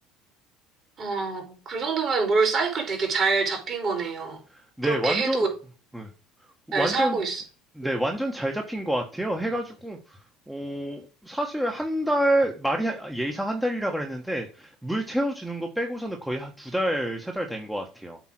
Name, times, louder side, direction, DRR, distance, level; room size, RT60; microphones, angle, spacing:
voice 1, 1.0-4.4 4.8-5.5 6.7-7.4, right 4 dB, 45° right, 3.8 m, -26 dB
voice 2, 4.5-5.5 5.9-6.1 6.7-7.2 7.8-10.2 10.5-18.2, right 1 dB, 5° right, 1.2 m, -28 dB
8.2 x 3.6 x 6.0 m
supercardioid pair, 90°, 0 cm